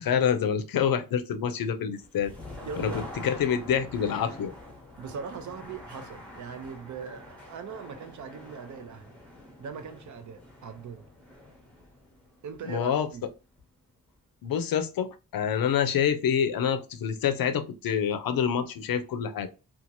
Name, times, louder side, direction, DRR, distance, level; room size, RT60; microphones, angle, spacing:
voice 1, 0.0-2.3 2.8-2.9 3.2-4.5 12.7-13.1 14.4-19.5, left 8 dB, 80° left, 0.5 m, -27 dB
sound 1, 1.9-13.8, left 1 dB, 5° left, 0.7 m, -46 dB
voice 2, 2.6-3.1 5.0-9.1 9.6-11.1 12.4-13.2, right 6 dB, 55° right, 0.5 m, -40 dB
2.8 x 2.4 x 2.6 m
wide cardioid pair, 170°, 35 cm